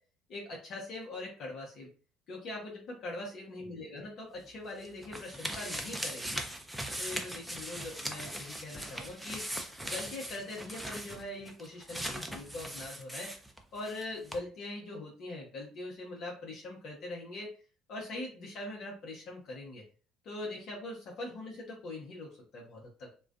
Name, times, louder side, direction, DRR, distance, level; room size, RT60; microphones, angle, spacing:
voice 1, 0.3-1.9 2.3-6.4 7.0-9.5 9.8-13.3 13.7-17.5 17.9-19.8 20.2-23.1, left 2 dB, 60° left, -3 dB, 0.8 m, -42 dB
sound 1, 4.4-14.0 14.3-14.4, right 1 dB, 5° right, 0.5 m, -40 dB
2.3 x 2.2 x 2.4 m, 0.39 s
hypercardioid pair, 65°, 0 cm